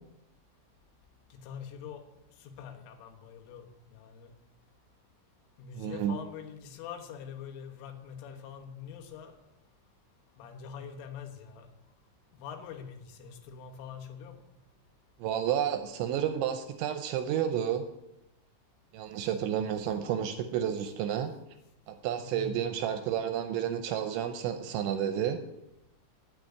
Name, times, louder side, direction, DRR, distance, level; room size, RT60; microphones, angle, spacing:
voice 1, 1.3-2.0 2.4-4.3 5.6-9.4 10.4-11.7 12.3-14.5 22.2-22.7, left 7 dB, 80° left, 4 dB, 3.8 m, -44 dB
voice 2, 5.8-6.2 15.2-17.8 18.9-21.3 21.9-25.4, right 9 dB, 80° right, 8 dB, 2.7 m, -31 dB
10.5 x 9.0 x 8.4 m, 0.92 s
omnidirectional pair, 5.8 m